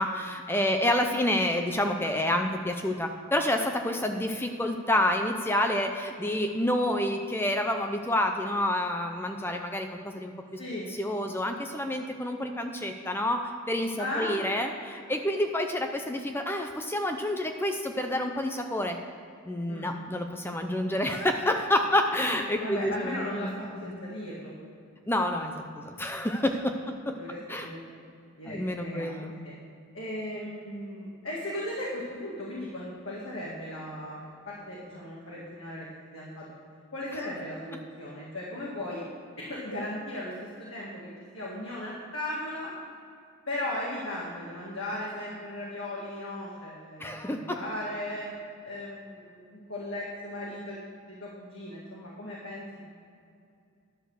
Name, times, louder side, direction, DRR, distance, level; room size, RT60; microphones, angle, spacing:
voice 1, 0.0-10.6 11.0-19.0 19.5-23.5 25.1-27.1 27.5-27.7 28.5-29.3 47.0-47.6, left 1 dB, 10° left, 5 dB, 0.5 m, -28 dB
voice 2, 10.6-10.9 14.0-14.4 19.7-19.9 22.6-24.5 27.2-27.8 28.4-29.1 29.4-29.6 29.9-34.2 34.5-35.9 36.1-36.4 36.9-39.0 39.4-40.3 40.6-41.1 41.3-42.7 43.5-48.3 48.6-53.0, left 1 dB, 60° left, -6 dB, 2.0 m, -37 dB
11.0 x 6.9 x 6.4 m, 2.4 s
head